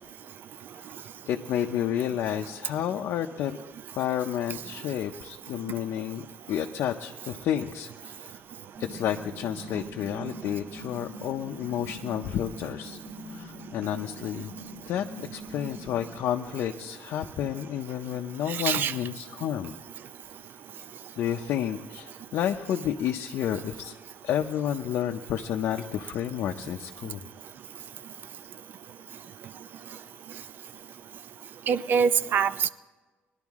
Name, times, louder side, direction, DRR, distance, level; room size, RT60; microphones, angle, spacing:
voice 1, 1.3-3.6 4.0-6.2 6.5-8.4 8.8-13.0 13.3-14.5 14.9-19.7 21.2-23.9 24.2-27.2, left 10 dB, 70° left, 2 dB, 0.6 m, -30 dB
sound 1, 8.7-16.1, equal, 80° right, 2.9 m, -43 dB
voice 2, 18.5-18.9 31.7-32.7, right 7 dB, 50° right, 15 dB, 0.5 m, -24 dB
19.5 x 11.5 x 3.6 m, 1.3 s
cardioid pair, 150°, 4 cm